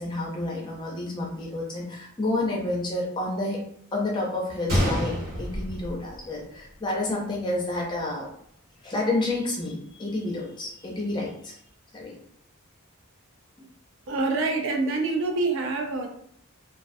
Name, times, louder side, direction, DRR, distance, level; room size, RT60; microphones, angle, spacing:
voice 1, 0.0-3.6 3.9-8.3 8.8-11.6 11.9-12.1, left 2 dB, 20° left, -2 dB, 0.4 m, -29 dB
Gunshot gunfire, 4.7-6.7 7.0-7.1 7.8-8.0, equal, 85° right, 1.1 m, -28 dB
voice 2, 14.1-16.1, right 3 dB, 55° right, 3 dB, 0.3 m, -26 dB
2.3 x 2.2 x 2.5 m, 0.66 s
head